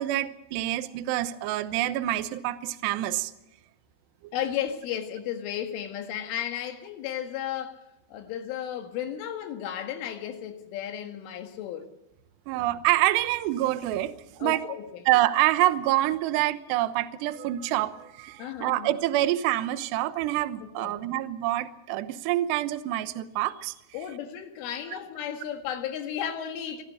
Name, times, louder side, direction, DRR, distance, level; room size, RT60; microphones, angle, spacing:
voice 1, 0.0-3.3 4.2-4.3 12.5-14.6 15.1-23.7, right 15 dB, 75° right, 2.9 m, -26 dB
voice 2, 4.3-7.8 8.1-11.9 14.4-15.0 18.4-19.0 20.8-21.0 23.9-26.8, left 10 dB, 80° left, 4.2 m, -34 dB
24.5 x 14.5 x 8.0 m
omnidirectional pair, 5.6 m